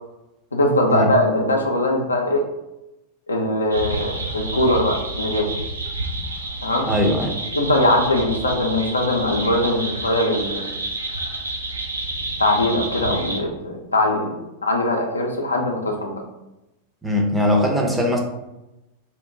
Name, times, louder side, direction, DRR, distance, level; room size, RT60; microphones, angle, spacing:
voice 1, 0.5-2.5 3.3-5.5 6.6-6.9 7.5-10.6 12.4-16.2, left 1 dB, 80° left, 2 dB, 0.4 m, -21 dB
sound 1, 3.7-13.4, right 2 dB, 80° right, 0.3 m, -29 dB
voice 2, 6.8-7.4 13.1-13.2 17.0-18.2, left 1 dB, 10° right, 0 dB, 0.5 m, -20 dB
2.7 x 2.1 x 2.6 m, 0.94 s
figure-of-eight pair, 90°, 0 cm